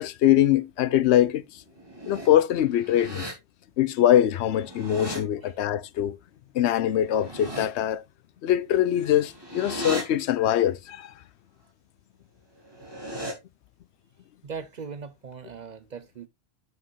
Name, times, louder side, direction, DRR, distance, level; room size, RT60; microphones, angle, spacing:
voice 1, 0.0-1.6 2.1-3.3 3.8-6.2 6.5-8.0 8.4-11.1, left 11 dB, 80° left, 0.8 m, -23 dB
sound 1, 1.7-2.3 2.7-3.3 4.5-5.2 7.0-7.7 8.9-10.0 12.6-13.3, equal, 20° right, 2.8 m, -36 dB
voice 2, 14.4-16.3, right 6 dB, 50° right, 0.6 m, -39 dB
7.4 x 6.2 x 3.0 m
omnidirectional pair, 1.1 m